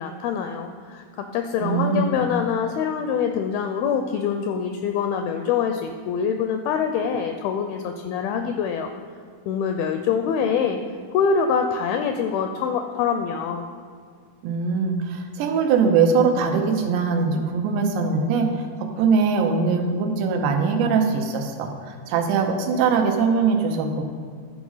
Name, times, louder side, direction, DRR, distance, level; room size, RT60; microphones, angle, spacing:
voice 1, 0.0-8.9 9.5-10.8 11.1-13.7, left 6 dB, 85° left, 6 dB, 2.2 m, -25 dB
voice 2, 1.6-2.3 14.4-18.5 18.8-24.0, right 5 dB, 85° right, 4 dB, 3.1 m, -22 dB
12.0 x 4.7 x 5.6 m, 2.1 s
omnidirectional pair, 4.8 m